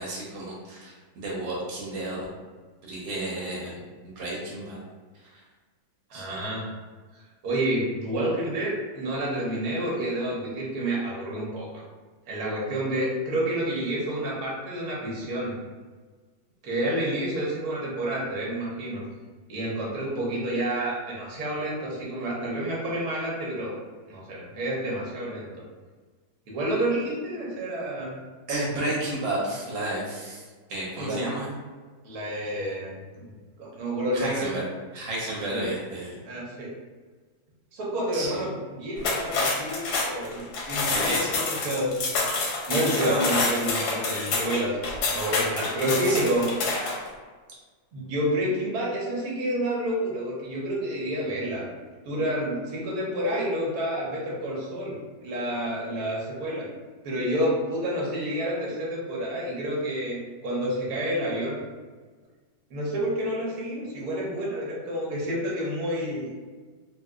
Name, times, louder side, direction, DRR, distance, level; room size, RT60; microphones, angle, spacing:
voice 1, 0.0-2.3 2.8-3.7 4.0-4.8 6.1-6.5 28.5-30.4 30.7-31.5 34.1-34.6 34.9-36.1 38.1-38.3 40.9-41.3 43.0-43.3 46.1-46.2, right 1 dB, 75° right, -4 dB, 1.4 m, -32 dB
voice 2, 6.1-6.7 7.1-11.8 12.3-15.5 16.6-19.0 19.5-23.7 24.1-25.6 26.5-28.2 31.0-31.3 32.0-33.3 33.6-34.5 35.4-35.7 36.3-36.7 37.7-42.0 42.7-46.5 47.9-51.7 52.0-56.7 57.0-61.6 62.7-66.3, right 1 dB, 60° right, -5 dB, 1.2 m, -29 dB
sound 1, 39.0-47.1, left 3 dB, 90° left, 1.4 m, -28 dB
3.4 x 2.7 x 2.3 m, 1.4 s
omnidirectional pair, 2.1 m